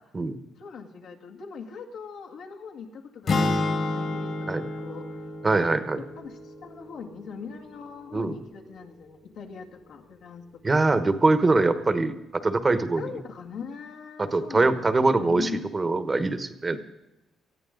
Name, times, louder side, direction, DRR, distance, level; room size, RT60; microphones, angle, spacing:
voice 1, 0.5-5.3 6.0-10.8 13.0-15.7 16.7-16.8, left 6 dB, 80° left, -1 dB, 2.2 m, -41 dB
sound 1, 3.3-7.4, left 2 dB, 50° left, 1.9 m, -30 dB
voice 2, 5.4-6.0 8.1-8.4 10.6-13.0 14.2-16.8, right 3 dB, 25° right, 11 dB, 1.1 m, -23 dB
19.5 x 13.5 x 3.9 m, 0.97 s
cardioid pair, 90°, 0 cm